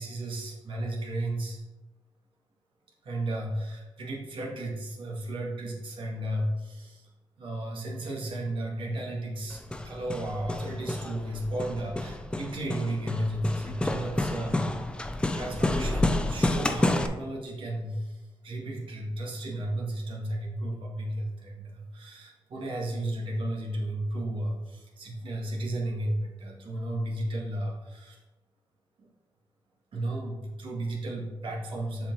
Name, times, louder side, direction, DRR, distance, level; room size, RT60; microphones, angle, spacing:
voice 1, 0.0-1.6 3.0-7.1 7.4-14.8 15.3-28.2 29.0-29.1 29.9-32.1, right 1 dB, 70° right, -2 dB, 1.8 m, -33 dB
Hammer, 9.5-17.1, left 1 dB, 10° left, 0.5 m, -30 dB
7.0 x 5.0 x 3.9 m, 1.1 s
cardioid pair, 100°, 9 cm